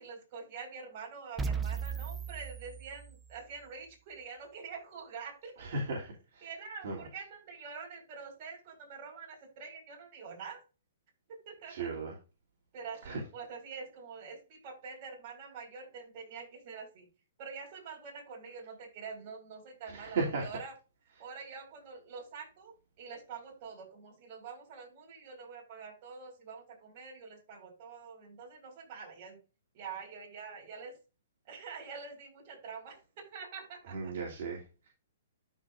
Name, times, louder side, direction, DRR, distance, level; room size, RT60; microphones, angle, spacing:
voice 1, 0.0-5.5 6.4-10.6 11.5-11.9 12.7-17.1 17.4-20.7 21.2-29.4 29.7-30.9 31.5-33.0 33.3-34.1, right 5 dB, 35° right, 0 dB, 4.9 m, -46 dB
sound 1, 1.4-3.4, right 5 dB, 10° right, 0.7 m, -37 dB
voice 2, 5.6-6.5 6.8-7.0 11.7-12.2 13.0-13.2 19.9-20.6 33.9-34.9, right 3 dB, 55° right, -3 dB, 3.0 m, -36 dB
13.0 x 5.2 x 2.5 m, 0.31 s
hypercardioid pair, 150°, 0 cm